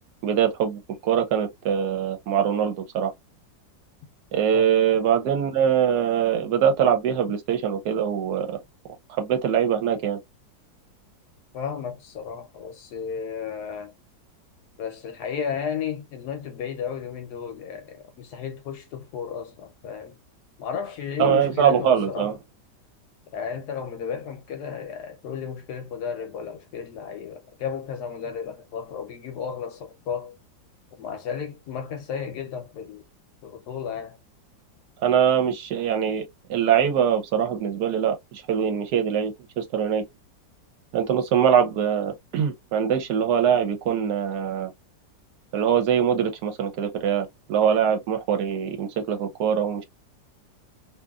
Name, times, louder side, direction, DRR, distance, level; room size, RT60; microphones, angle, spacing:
voice 1, 0.2-3.1 4.3-8.6 9.2-10.2 21.2-22.3 35.0-36.2 36.5-40.0 40.9-44.7 45.5-49.8, right 8 dB, 70° right, 1.0 m, -23 dB
voice 2, 11.5-13.9 14.8-20.2 20.6-22.3 23.3-30.4 31.0-33.1 33.4-34.2, left 7 dB, 70° left, 1.0 m, -33 dB
2.8 x 2.5 x 2.3 m
omnidirectional pair, 2.0 m